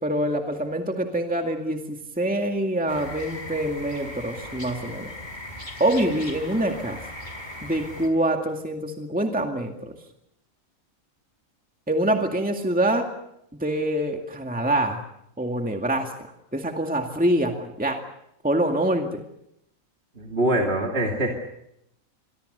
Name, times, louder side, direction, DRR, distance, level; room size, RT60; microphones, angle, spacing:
voice 1, 0.0-5.1 5.8-7.0 7.6-10.0 11.9-13.1 13.6-15.0 15.4-16.1 16.5-18.0 18.4-19.2, right 1 dB, 5° right, 3 dB, 2.1 m, -25 dB
sound 1, 2.9-8.1, left 1 dB, 30° left, 5.0 m, -38 dB
voice 2, 20.2-21.3, right 1 dB, 45° right, 1 dB, 3.1 m, -23 dB
27.5 x 23.0 x 6.8 m, 0.78 s
omnidirectional pair, 1.5 m